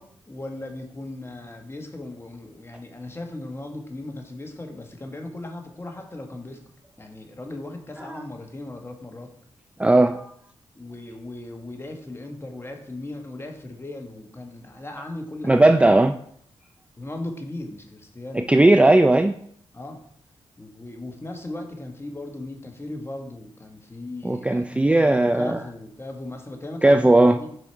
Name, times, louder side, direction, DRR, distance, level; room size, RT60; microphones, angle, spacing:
voice 1, 0.0-6.6 7.0-9.3 10.7-16.0 17.0-18.5 19.7-20.0 20.6-27.5, left 2 dB, 25° left, 3 dB, 1.4 m, -37 dB
voice 2, 9.8-10.3 15.5-16.1 18.3-19.3 24.2-25.6 26.8-27.4, right 2 dB, 10° right, 7 dB, 0.4 m, -17 dB
6.2 x 4.9 x 4.5 m, 0.65 s
cardioid pair, 55°, 10 cm